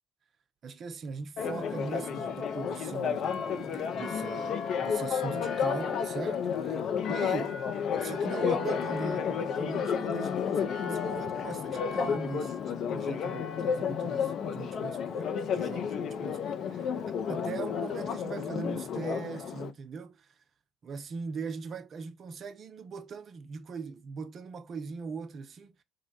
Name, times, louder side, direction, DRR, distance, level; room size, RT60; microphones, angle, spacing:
voice 1, 0.6-6.8 7.1-7.6 7.9-20.3 20.8-25.7, right 5 dB, 45° right, 0.4 m, -40 dB
Church bell, 1.4-19.7, left 7 dB, 50° left, 0.4 m, -31 dB
2.6 x 2.0 x 3.9 m
figure-of-eight pair, 55°, 0 cm